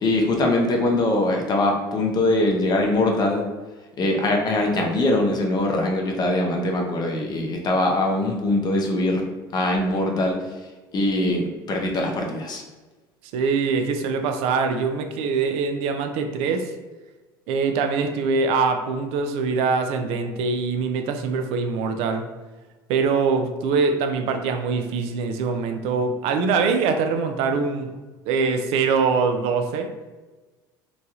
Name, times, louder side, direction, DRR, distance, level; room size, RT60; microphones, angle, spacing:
voice 1, 0.0-3.4 4.0-9.2 9.5-10.4 10.9-12.6, left 2 dB, 40° left, 1 dB, 0.7 m, -22 dB
voice 2, 13.3-16.7 17.5-22.3 22.9-27.9 28.3-29.9, right 5 dB, 65° right, 6 dB, 0.4 m, -23 dB
3.0 x 2.3 x 2.7 m, 1.2 s
hypercardioid pair, 75°, 11 cm